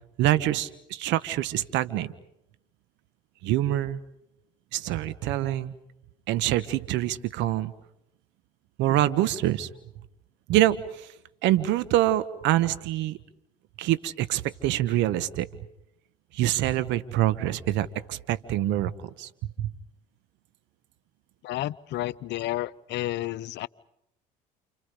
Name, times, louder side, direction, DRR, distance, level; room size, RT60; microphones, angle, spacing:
voice 1, 0.2-2.1 3.4-4.0 4.7-5.7 6.3-7.7 8.8-9.7 10.5-11.1 11.4-13.2 13.8-15.5 16.3-19.3 19.6-19.7, right 14 dB, 75° right, 14 dB, 1.4 m, -25 dB
voice 2, 21.4-23.7, left 16 dB, 65° left, 17 dB, 0.9 m, -31 dB
29.5 x 29.0 x 5.2 m, 0.80 s
supercardioid pair, 70°, 19 cm